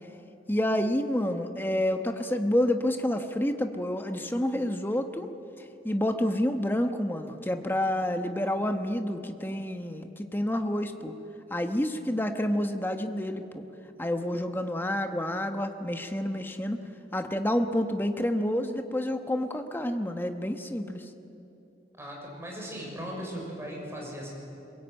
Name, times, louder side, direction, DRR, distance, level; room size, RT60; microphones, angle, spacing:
voice 1, 0.5-5.3 5.8-11.1 11.5-13.6 14.0-16.8 17.1-21.0, left 1 dB, 10° left, 6 dB, 1.2 m, -29 dB
voice 2, 22.0-24.3, equal, 15° right, -2 dB, 5.9 m, -38 dB
22.5 x 21.0 x 9.0 m, 2.9 s
head